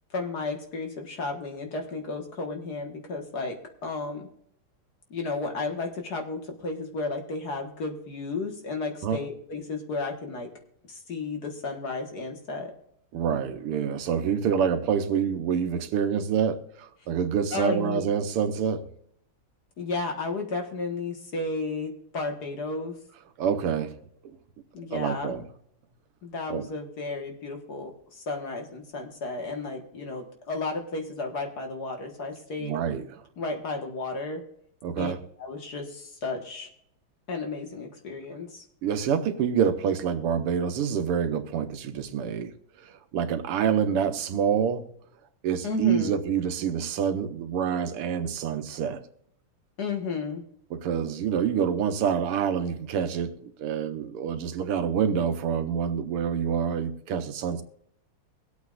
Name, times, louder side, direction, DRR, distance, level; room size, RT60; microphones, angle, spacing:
voice 1, 0.1-3.6 3.8-4.3 5.1-10.5 10.9-12.7 17.5-18.1 19.8-23.0 24.7-25.3 26.2-32.8 33.4-34.4 35.0-35.1 35.4-36.7 37.3-38.6 45.6-46.2 49.8-50.4, left 3 dB, 50° left, 2.0 m, -33 dB
voice 2, 13.1-18.9 23.4-23.9 24.2-24.4 24.9-25.4 26.5-26.7 32.6-33.2 34.8-35.2 38.8-42.5 42.8-44.8 45.4-49.0 50.7-57.6, right 7 dB, 90° right, 1.9 m, -27 dB
23.0 x 8.4 x 2.5 m
omnidirectional pair, 2.4 m